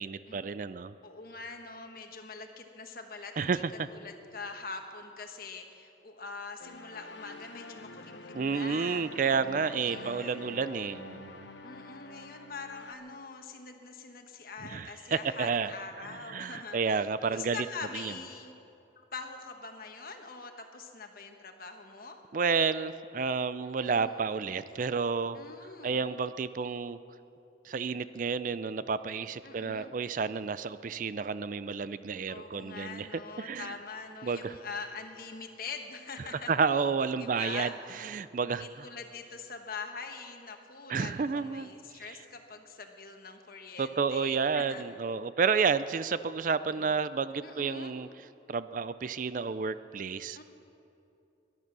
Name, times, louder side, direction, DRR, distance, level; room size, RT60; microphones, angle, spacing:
voice 1, 0.0-0.9 3.4-3.9 8.3-11.5 14.6-15.7 16.3-17.7 17.9-18.1 22.3-25.4 25.8-27.0 27.7-33.1 33.4-33.7 34.2-34.6 36.5-38.9 40.9-42.0 43.8-48.1 48.5-50.4, right 5 dB, 45° right, 14 dB, 0.4 m, -31 dB
voice 2, 1.0-3.5 3.9-9.1 9.8-10.6 11.6-18.5 19.1-22.2 23.8-24.3 25.3-26.1 29.4-29.9 32.3-36.5 37.2-37.7 38.4-44.8 45.3-45.4 46.7-46.9 47.4-47.9 50.3-50.4, left 4 dB, 50° left, 5 dB, 1.3 m, -44 dB
sound 1, 6.6-12.9, left 3 dB, 75° left, 1.0 m, -47 dB
21.5 x 11.0 x 6.1 m, 2.7 s
head